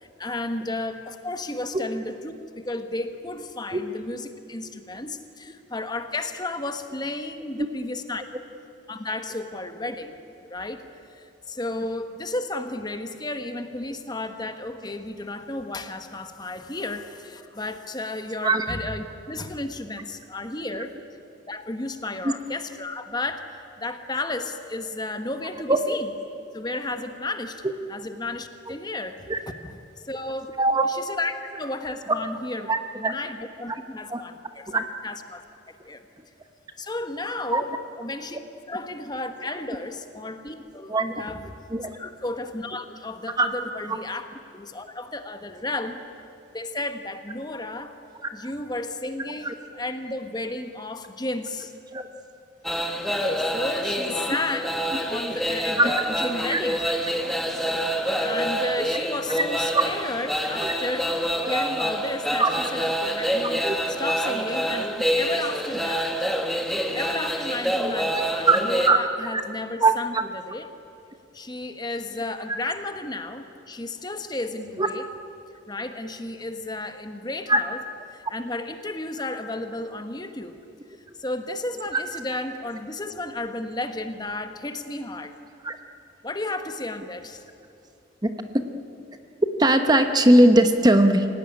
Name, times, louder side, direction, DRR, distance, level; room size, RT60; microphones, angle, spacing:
voice 1, 0.0-8.2 8.9-10.2 10.4-10.8 11.1-20.9 21.5-23.5 23.8-26.1 26.5-27.6 27.9-29.8 30.0-30.6 30.8-36.0 36.8-41.4 41.9-44.3 44.5-46.0 46.5-47.9 48.3-51.7 53.5-56.8 58.2-66.1 66.9-70.7 71.3-75.1 75.7-77.8 78.1-80.6 81.2-85.3 86.2-87.4, left 2 dB, 20° left, 7 dB, 1.2 m, -33 dB
voice 2, 32.7-33.1 34.1-34.2 34.7-34.8 37.5-37.6 40.9-41.0 41.7-41.9 43.4-43.5 49.4-49.5 51.9-52.0 55.8-55.9 56.5-56.6 59.7-59.8 60.6-60.7 61.4-61.5 62.4-62.5 63.4-63.8 68.1-68.2 68.5-68.6 68.9-69.0 69.3-69.4 69.8-70.2 74.8-74.9 77.5-77.6 85.6-85.8 88.2-88.3 89.4-91.3, right 2 dB, 20° right, 7 dB, 1.0 m, -20 dB
sound 1, 52.6-68.9, equal, ahead, 1.5 m, -26 dB
26.0 x 17.0 x 9.9 m, 2.9 s
head